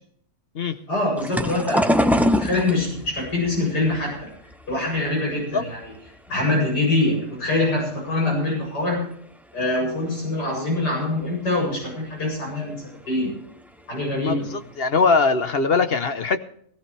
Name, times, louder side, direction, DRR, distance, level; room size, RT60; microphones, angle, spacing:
voice 1, 0.9-4.3 4.7-5.9 6.3-9.1 9.5-12.8 13.1-13.3 13.9-14.5, left 2 dB, 90° left, 8.7 m, -24 dB
sound 1, 1.2-6.3 6.6-7.5 8.0-8.4 8.6-8.7 9.9-10.0 10.6-10.7 11.2-11.3 11.5-11.8 13.0-13.2 13.8-13.9 14.3-14.8, equal, ahead, 0.5 m, -25 dB
voice 2, 14.2-16.4, left 4 dB, 45° left, 0.9 m, -21 dB
17.5 x 16.0 x 3.3 m
omnidirectional pair, 1.7 m